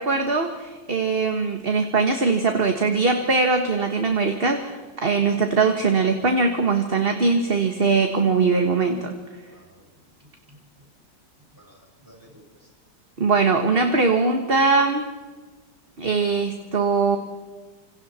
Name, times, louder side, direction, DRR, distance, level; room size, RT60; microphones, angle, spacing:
voice 1, 0.0-9.1 13.2-15.0 16.0-17.2, right 4 dB, 35° right, 5 dB, 1.6 m, -21 dB
voice 2, 9.4-10.8 11.4-12.7, equal, 10° right, -1 dB, 6.4 m, -54 dB
29.0 x 27.0 x 4.4 m, 1.4 s
omnidirectional pair, 1.9 m